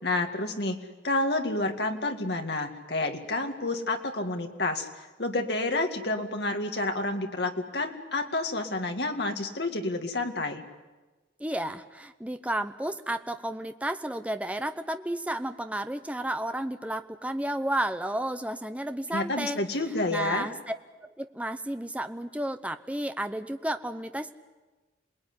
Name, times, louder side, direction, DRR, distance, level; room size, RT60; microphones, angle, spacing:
voice 1, 0.0-10.6 19.1-20.5, left 2 dB, 65° left, 4 dB, 2.1 m, -29 dB
voice 2, 11.4-19.6 20.1-20.7 21.2-24.3, right 1 dB, 5° right, 9 dB, 0.8 m, -32 dB
27.0 x 20.0 x 9.7 m, 1.2 s
head